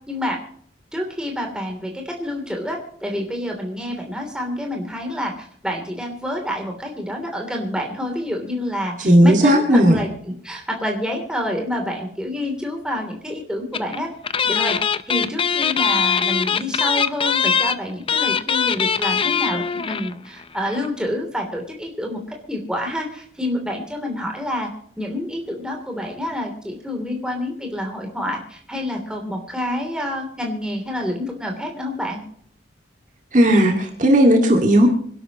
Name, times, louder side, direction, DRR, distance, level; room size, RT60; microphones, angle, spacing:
voice 1, 0.1-0.4 0.9-10.1 10.4-14.1 14.4-22.2 22.5-24.7 25.0-32.2, left 1 dB, 5° right, 1 dB, 3.1 m, -28 dB
voice 2, 9.0-10.0 33.3-34.9, right 1 dB, 40° right, 2 dB, 2.1 m, -14 dB
sound 1, 13.7-14.0 14.2-20.1 20.4-20.5 20.7-20.9, left 6 dB, 30° left, 0.6 m, -21 dB
26.0 x 11.5 x 3.0 m, 0.62 s
head